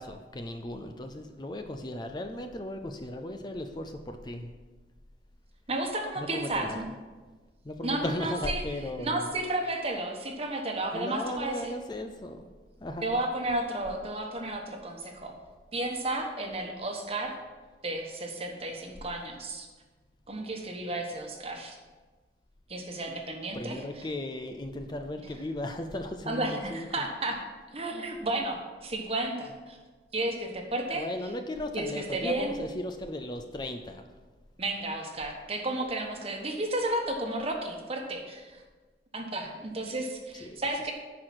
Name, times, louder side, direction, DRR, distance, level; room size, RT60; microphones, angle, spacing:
voice 1, 0.0-4.5 6.2-6.8 7.6-9.4 10.9-12.5 12.8-13.2 23.5-27.1 30.9-34.0 40.4-40.6, left 1 dB, 25° left, 6 dB, 0.5 m, -36 dB
voice 2, 5.7-6.8 7.8-8.6 9.0-11.7 13.0-15.3 15.7-17.3 17.8-19.7 20.3-21.8 22.7-24.0 26.3-27.4 27.7-29.8 30.1-31.1 31.7-32.6 34.6-38.6 39.1-40.9, right 2 dB, 35° right, 3 dB, 1.2 m, -32 dB
10.5 x 4.8 x 5.8 m, 1.3 s
head